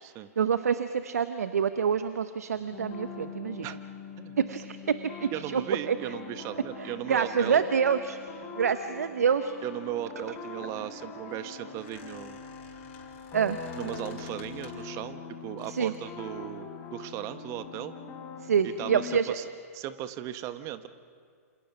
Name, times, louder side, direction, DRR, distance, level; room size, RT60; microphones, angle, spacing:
voice 1, 0.4-3.7 4.4-5.6 5.9-6.0 6.8-8.2 8.6-9.6 13.3-13.6 15.7-15.9 18.4-19.4, right 7 dB, 75° right, 11 dB, 0.9 m, -27 dB
sound 1, 2.6-19.2, left 5 dB, 30° left, 5.5 m, -43 dB
voice 2, 5.3-7.7 9.6-12.4 13.7-17.9 18.6-19.5 19.7-20.9, right 12 dB, 35° right, 11 dB, 1.3 m, -37 dB
Squeak, 10.6-15.0 15.6-16.1, left 5 dB, 55° left, 4.5 m, -53 dB
27.5 x 27.5 x 6.1 m, 2.1 s
hypercardioid pair, 110°, 8 cm